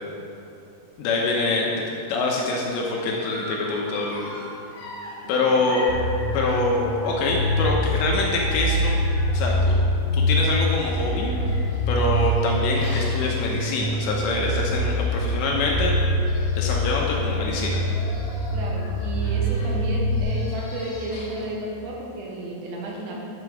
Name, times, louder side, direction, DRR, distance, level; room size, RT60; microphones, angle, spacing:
voice 1, 1.0-4.3 5.3-5.8 6.3-8.9 9.3-9.8 10.1-11.4 11.9-16.0 16.6-17.8, left 3 dB, 75° left, -2 dB, 2.8 m, -25 dB
Dog, 3.2-9.8 10.5-14.1 14.6-14.7 15.0-15.1 16.0-16.1 16.2-16.8 17.4-21.5, left 1 dB, 60° left, 3.8 m, -40 dB
voice 2, 5.2-5.7 18.5-23.2, right 1 dB, 75° right, -2 dB, 3.3 m, -33 dB
sound 1, 5.9-20.2, equal, 30° left, 1.6 m, -24 dB
11.0 x 7.4 x 4.8 m, 2.9 s
omnidirectional pair, 5.7 m